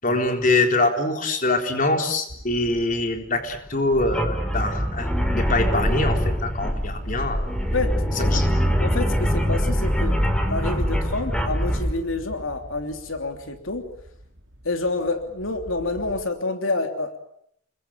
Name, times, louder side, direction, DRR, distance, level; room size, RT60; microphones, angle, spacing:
voice 1, 0.0-7.5 8.3-8.5, left 2 dB, 40° left, 5 dB, 3.9 m, -24 dB
sound 1, 2.3-16.2, equal, 60° right, 3.6 m, -39 dB
sound 2, 3.9-11.9, equal, 5° left, 3.6 m, -23 dB
voice 2, 7.7-8.5 8.8-10.2 10.5-13.9 14.6-17.2, left 3 dB, 80° left, 6 dB, 3.0 m, -28 dB
29.0 x 22.0 x 9.0 m, 0.71 s
head